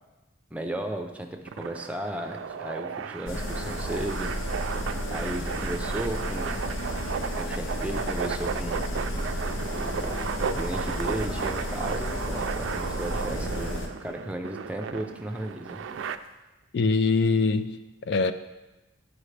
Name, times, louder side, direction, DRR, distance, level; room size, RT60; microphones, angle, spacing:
voice 1, 0.5-4.3 5.1-6.6 7.4-8.9 9.7-15.8, right 1 dB, 5° right, 3 dB, 0.5 m, -35 dB
sound 1, 1.5-16.2, right 6 dB, 75° right, 0.4 m, -34 dB
sound 2, 3.3-13.9, equal, 80° left, 1.0 m, -32 dB
voice 2, 16.7-18.3, left 4 dB, 55° left, 11 dB, 0.3 m, -23 dB
11.0 x 4.9 x 3.3 m, 1.1 s
head